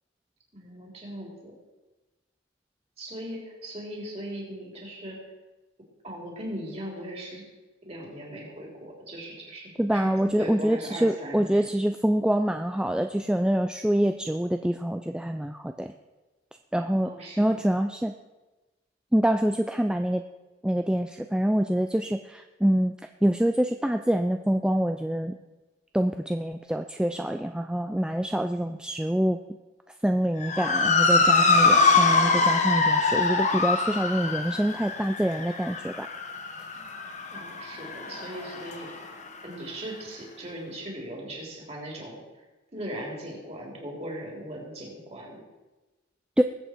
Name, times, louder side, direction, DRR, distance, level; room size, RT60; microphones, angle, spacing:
voice 1, 0.5-1.6 3.0-5.2 6.0-7.4 7.8-11.7 17.0-17.6 37.3-39.1 39.4-42.2 42.7-45.4, right 1 dB, 30° right, -2 dB, 3.5 m, -39 dB
voice 2, 9.8-15.9 16.7-18.1 19.1-20.2 20.6-22.9 23.2-25.4 25.9-29.4 30.0-36.1 46.4-46.5, equal, 5° right, 6 dB, 0.3 m, -26 dB
Motor vehicle (road) / Siren, 30.4-39.0, left 3 dB, 35° left, 1.1 m, -23 dB
20.5 x 8.1 x 4.5 m, 1.1 s
head